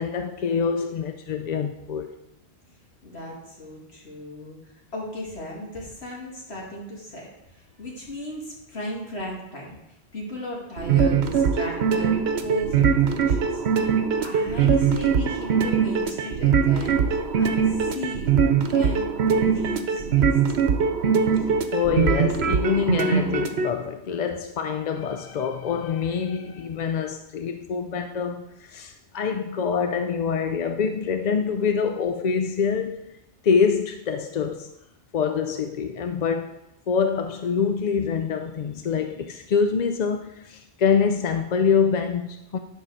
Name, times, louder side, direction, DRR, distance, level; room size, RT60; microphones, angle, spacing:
voice 1, 0.0-2.2 21.7-33.2 33.4-34.7 35.1-36.6 36.9-42.6, left 6 dB, 55° left, 0.5 m, -25 dB
voice 2, 3.0-20.4, left 1 dB, 80° left, 2.7 m, -37 dB
sound 1, 10.8-23.7, right 6 dB, 80° right, 1.1 m, -21 dB
10.5 x 4.7 x 6.3 m
omnidirectional pair, 1.1 m